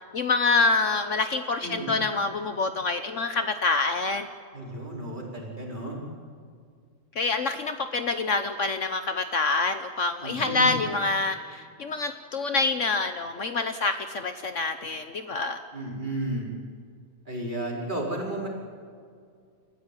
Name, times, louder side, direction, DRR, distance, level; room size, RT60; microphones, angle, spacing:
voice 1, 0.1-4.3 7.1-15.6, left 3 dB, 55° left, 8 dB, 1.2 m, -26 dB
voice 2, 1.6-1.9 4.5-6.0 10.2-10.7 15.7-16.5 17.2-18.5, right 1 dB, 30° right, -2 dB, 5.0 m, -33 dB
28.5 x 14.5 x 9.9 m, 2.2 s
omnidirectional pair, 1.6 m